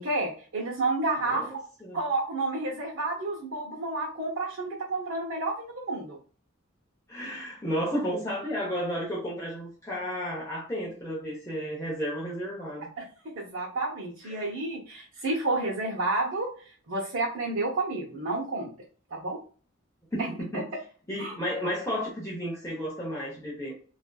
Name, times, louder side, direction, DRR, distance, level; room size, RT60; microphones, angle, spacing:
voice 1, 0.0-1.6 1.9-6.2 13.0-13.1 13.3-16.5 16.9-18.7 19.1-19.4 21.2-21.3, right 2 dB, 75° right, 0.8 m, -30 dB
voice 2, 1.3-2.0 7.1-12.9 14.2-14.5 20.1-20.7 21.1-23.7, equal, 15° left, 0.7 m, -33 dB
3.4 x 2.5 x 2.2 m
head